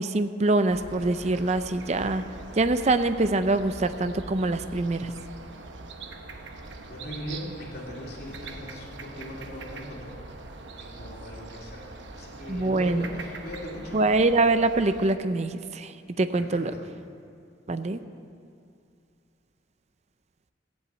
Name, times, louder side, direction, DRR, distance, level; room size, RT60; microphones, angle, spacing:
voice 1, 0.0-2.2 2.6-5.1 12.5-13.1 13.9-15.9 16.2-16.7 17.7-18.0, right 2 dB, 35° right, 10 dB, 0.5 m, -24 dB
sound 1, 0.7-15.1, right 2 dB, 70° right, 1.0 m, -42 dB
voice 2, 6.8-10.2 10.8-14.0 16.3-16.8, equal, 55° left, -3 dB, 2.9 m, -40 dB
15.0 x 8.0 x 8.1 m, 2.4 s
head